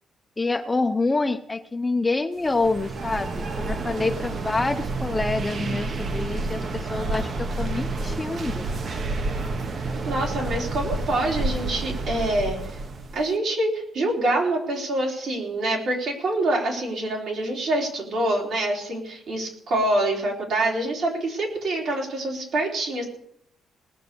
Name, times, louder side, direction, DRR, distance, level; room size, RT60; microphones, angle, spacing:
voice 1, 0.4-8.7, left 3 dB, 15° left, 8 dB, 0.6 m, -27 dB
sound 1, 2.4-13.3, right 3 dB, 40° right, 0.9 m, -29 dB
voice 2, 10.1-12.8 13.1-23.1, right 1 dB, 60° right, -1 dB, 3.8 m, -26 dB
19.0 x 6.9 x 6.8 m, 0.72 s
cardioid pair, 150°, 0 cm